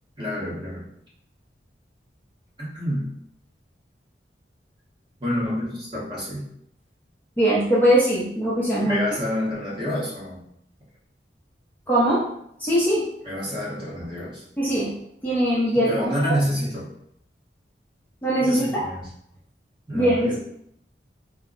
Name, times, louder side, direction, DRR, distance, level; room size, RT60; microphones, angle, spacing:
voice 1, 0.2-0.8 2.6-3.1 5.2-6.4 8.8-10.4 13.2-14.4 15.7-16.9 18.4-19.0 19.9-20.4, equal, 25° right, -7 dB, 1.2 m, -28 dB
voice 2, 7.4-9.0 11.9-12.2 12.6-13.1 14.6-14.9 15.2-16.3 18.2-18.8 19.9-20.4, right 1 dB, 10° left, -7 dB, 0.6 m, -21 dB
3.2 x 2.0 x 3.8 m, 0.72 s
head